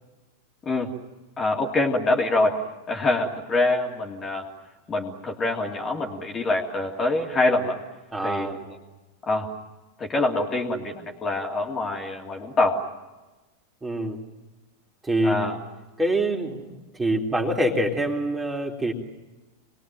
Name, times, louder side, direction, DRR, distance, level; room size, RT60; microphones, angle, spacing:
voice 1, 1.4-2.6 2.9-4.5 4.9-7.8 8.2-8.7 9.3-9.5 10.0-12.8 15.2-15.6, left 2 dB, 20° left, 1 dB, 3.0 m, -25 dB
voice 2, 8.1-8.6 13.8-14.2 15.1-15.4 16.0-18.9, right 1 dB, 10° right, 1 dB, 3.6 m, -25 dB
28.5 x 21.5 x 9.1 m, 1.1 s
figure-of-eight pair, 90°, 0 cm